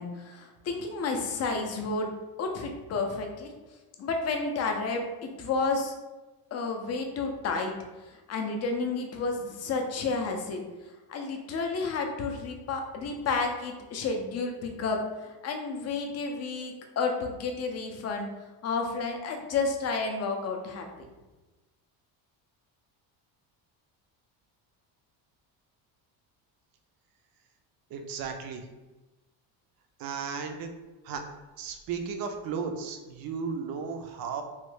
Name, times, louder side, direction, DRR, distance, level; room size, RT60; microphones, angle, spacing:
voice 1, 0.0-2.1 2.4-3.5 4.0-5.9 6.5-7.7 8.3-10.6 11.1-18.3 18.6-20.9, left 4 dB, 35° left, 3 dB, 0.4 m, -31 dB
voice 2, 27.9-28.7 30.0-30.7 31.0-31.2 31.6-34.4, right 5 dB, 50° right, 5 dB, 0.5 m, -35 dB
3.2 x 2.2 x 3.1 m, 1.1 s
cardioid pair, 140°, 44 cm